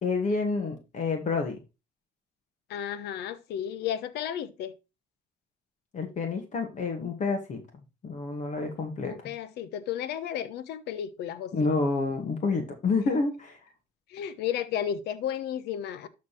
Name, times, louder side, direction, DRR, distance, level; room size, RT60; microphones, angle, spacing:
voice 1, 0.0-1.6 5.9-7.6 8.0-9.3 11.5-13.6, left 3 dB, 45° left, 2.2 m, -28 dB
voice 2, 2.7-4.7 9.0-11.5 14.1-16.1, left 9 dB, 80° left, 1.1 m, -33 dB
12.0 x 4.2 x 4.3 m
cardioid pair, 110°, 17 cm